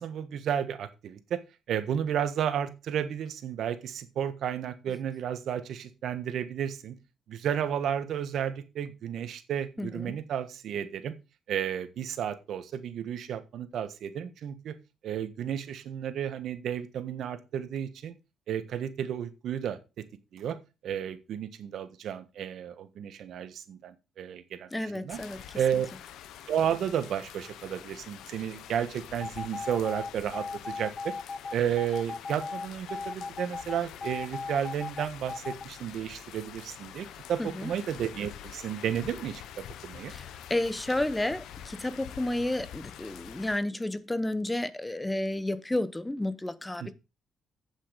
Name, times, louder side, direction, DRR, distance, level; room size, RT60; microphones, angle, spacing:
voice 1, 0.0-1.4 1.7-7.0 7.3-11.1 11.5-14.7 15.0-18.1 18.5-19.8 20.3-20.6 20.8-25.2 25.5-25.9 26.5-31.1 31.5-39.4 39.8-40.1 46.8-46.9, right 9 dB, 70° right, 1.4 m, -32 dB
voice 2, 9.8-10.2 24.7-25.4 37.4-37.7 40.1-46.9, left 1 dB, 10° left, 0.9 m, -31 dB
sound 1, 25.1-43.6, left 10 dB, 85° left, 1.0 m, -46 dB
sound 2, 29.2-35.6, left 4 dB, 35° left, 0.7 m, -36 dB
8.5 x 7.4 x 5.1 m
cardioid pair, 90°, 0 cm